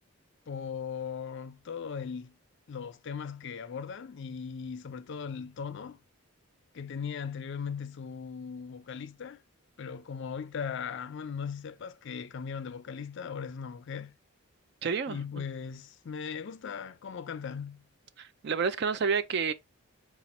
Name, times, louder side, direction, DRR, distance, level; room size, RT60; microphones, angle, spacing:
voice 1, 0.5-2.4 2.7-6.0 6.7-9.4 9.8-14.1 15.1-17.8, left 6 dB, 55° left, 0.4 m, -38 dB
voice 2, 14.8-15.2 18.2-19.5, right 5 dB, 50° right, 0.4 m, -29 dB
4.1 x 2.4 x 4.2 m
head